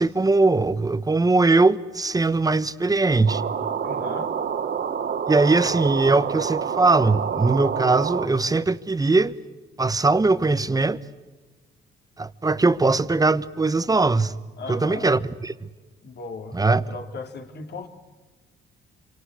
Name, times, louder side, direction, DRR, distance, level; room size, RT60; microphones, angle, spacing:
voice 1, 0.0-3.4 5.3-9.3 9.8-11.0 12.2-14.3 14.7-15.7 16.5-16.9, right 3 dB, 20° right, 1.2 m, -20 dB
sound 1, 3.3-8.3, right 7 dB, 60° right, 2.4 m, -27 dB
voice 2, 3.8-4.3 14.6-15.1 16.0-17.9, left 4 dB, 60° left, 3.5 m, -37 dB
27.5 x 25.0 x 8.4 m
cardioid pair, 90°, 20 cm